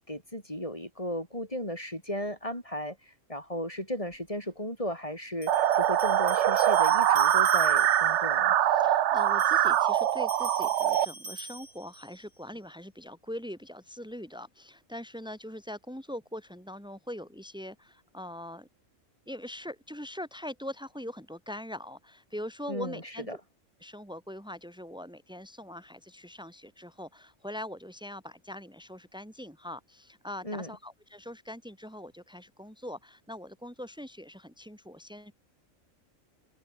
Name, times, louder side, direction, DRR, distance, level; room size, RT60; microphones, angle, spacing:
voice 1, 0.0-8.5 22.7-23.0 23.3-23.4 30.4-30.7, equal, 25° left, 6.2 m, -35 dB
sound 1, 4.1-4.2 5.4-8.2 9.2-12.2, right 2 dB, 90° right, 7.3 m, -43 dB
sound 2, 5.5-11.1, right 11 dB, 65° right, 1.0 m, -23 dB
voice 2, 8.6-18.7 19.3-23.4 23.8-35.3, equal, 5° right, 5.0 m, -42 dB
omnidirectional pair, 1.3 m